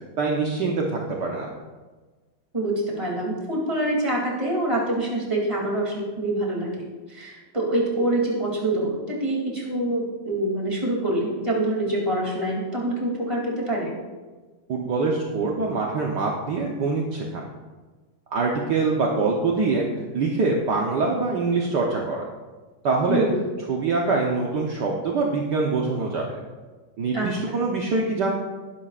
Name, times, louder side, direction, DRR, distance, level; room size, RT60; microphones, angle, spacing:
voice 1, 0.2-1.5 14.7-17.4 18.3-19.9 20.1-22.3 22.8-23.2 23.7-26.4 27.0-28.3, right 3 dB, 60° right, -1 dB, 1.6 m, -24 dB
voice 2, 2.5-13.9 23.1-23.3 27.1-27.5, right 1 dB, 15° right, -3 dB, 2.7 m, -26 dB
19.5 x 11.0 x 2.5 m, 1.3 s
omnidirectional pair, 2.2 m